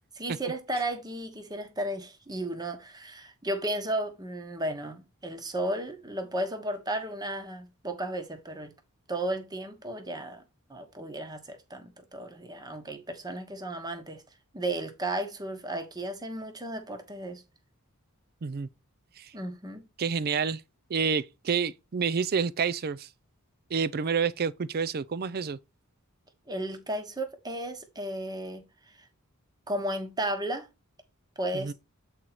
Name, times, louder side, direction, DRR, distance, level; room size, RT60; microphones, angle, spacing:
voice 1, 0.2-8.7 9.1-10.4 10.7-14.2 14.5-17.4 19.3-19.9 26.5-29.1 29.7-30.7 31.4-31.7, right 1 dB, 20° right, 1.1 m, -34 dB
voice 2, 20.0-20.6 20.9-23.1 23.7-25.6 31.5-31.7, right 6 dB, 45° right, 0.4 m, -28 dB
7.8 x 4.4 x 4.0 m
head